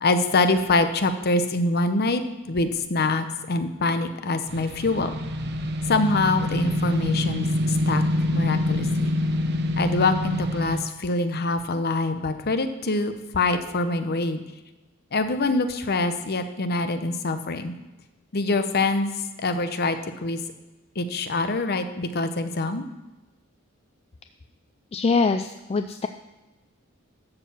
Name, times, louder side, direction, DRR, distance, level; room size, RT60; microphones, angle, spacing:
voice 1, 0.0-5.1 5.9-8.0 8.3-9.1 9.8-14.4 15.1-17.7 18.3-20.4 21.0-22.9, left 2 dB, 50° left, 9 dB, 0.8 m, -25 dB
sound 1, 4.5-10.8, left 1 dB, 50° right, 0.9 m, -26 dB
voice 2, 24.9-26.1, left 4 dB, 30° left, 8 dB, 0.3 m, -23 dB
13.0 x 4.7 x 7.2 m, 1.1 s
head